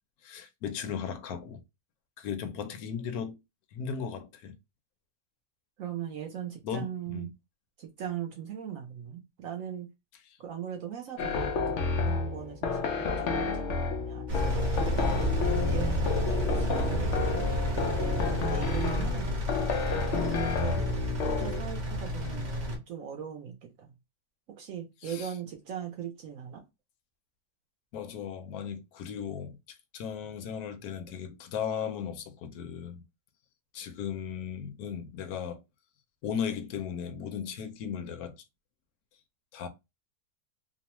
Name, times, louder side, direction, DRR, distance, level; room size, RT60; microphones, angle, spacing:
voice 1, 0.2-1.6 2.2-3.4 3.7-4.6 6.6-7.3 25.0-25.3 27.9-33.0 33.7-35.6 36.2-38.3 39.5-39.7, left 7 dB, 70° left, 1.0 m, -36 dB
voice 2, 5.8-7.3 7.8-9.9 10.4-15.2 15.7-17.5 18.2-19.8 20.4-20.8 21.2-23.9 24.6-26.6, right 9 dB, 70° right, 0.8 m, -40 dB
sound 1, 11.2-21.6, left 4 dB, 85° left, 0.6 m, -31 dB
Engine, 14.3-22.8, equal, 35° right, 0.7 m, -30 dB
3.0 x 2.0 x 2.9 m
omnidirectional pair, 1.8 m